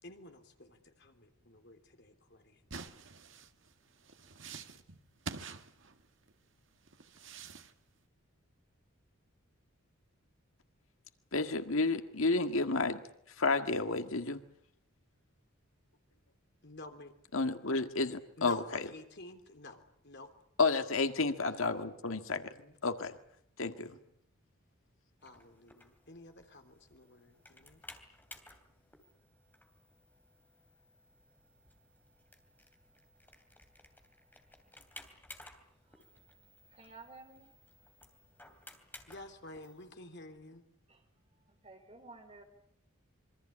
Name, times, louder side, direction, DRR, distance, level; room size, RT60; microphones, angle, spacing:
voice 1, 0.0-2.7 16.6-17.1 18.4-20.3 21.3-22.0 22.3-22.7 25.2-27.8 39.1-40.6, left 2 dB, 55° left, 6 dB, 3.3 m, -51 dB
sound 1, 2.7-6.3 6.9-7.7, right 4 dB, 60° right, 1.7 m, -46 dB
voice 2, 11.3-14.4 17.3-18.9 20.6-22.5 22.8-23.2 23.6-24.0, left 3 dB, 75° left, 8 dB, 1.8 m, -31 dB
sound 2, 25.2-39.9, left 2 dB, 10° left, 3.0 m, -57 dB
voice 3, 36.7-37.5 40.9-41.0 41.6-42.4, right 3 dB, 30° right, 5 dB, 4.5 m, -53 dB
26.5 x 24.0 x 8.7 m, 0.70 s
head